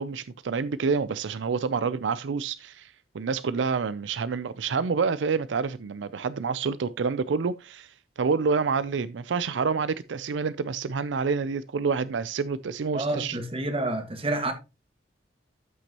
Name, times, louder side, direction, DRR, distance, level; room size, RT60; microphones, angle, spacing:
voice 1, 0.0-13.4, right 5 dB, 80° right, 0.5 m, -28 dB
voice 2, 12.9-14.5, right 2 dB, 30° right, 1.7 m, -28 dB
13.0 x 6.0 x 2.9 m
head